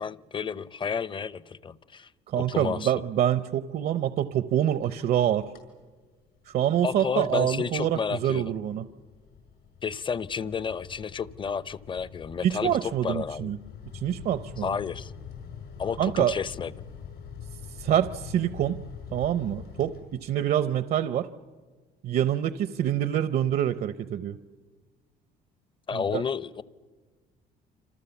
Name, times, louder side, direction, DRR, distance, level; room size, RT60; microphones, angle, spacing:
voice 1, 0.0-2.1 2.4-2.9 6.8-8.5 9.8-13.5 14.6-15.1 15.8-16.7 25.9-26.6, left 6 dB, 30° left, 18 dB, 0.7 m, -31 dB
voice 2, 2.3-5.5 6.5-8.8 12.4-13.6 13.9-14.7 16.0-16.3 17.8-18.8 19.1-21.3 22.0-24.4 25.9-26.2, right 10 dB, 60° right, 13 dB, 0.7 m, -26 dB
sound 1, 4.7-5.2 5.5-5.8 6.3-20.6, left 7 dB, 75° left, 6.7 m, -45 dB
27.5 x 27.0 x 7.1 m, 1.4 s
cardioid pair, 110°, 17 cm